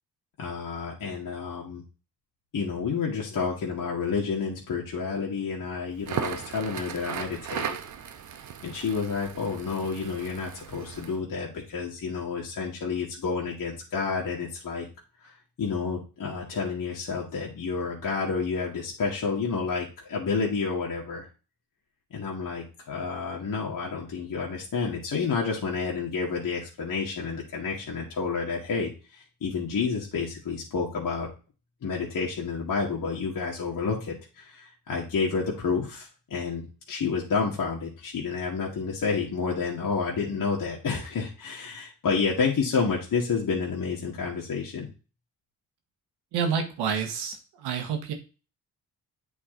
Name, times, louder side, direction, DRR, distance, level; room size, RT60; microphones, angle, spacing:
voice 1, 0.4-1.8 2.5-7.8 8.6-14.9 15.2-15.3 15.6-21.3 22.1-31.3 31.8-44.9, left 5 dB, 55° left, -3 dB, 1.9 m, -30 dB
Crackle, 5.9-11.2, right 8 dB, 50° right, 0.9 m, -37 dB
voice 2, 46.3-48.1, right 6 dB, 80° right, 5 dB, 1.4 m, -29 dB
8.3 x 3.9 x 3.8 m, 0.33 s
hypercardioid pair, 50°, 39 cm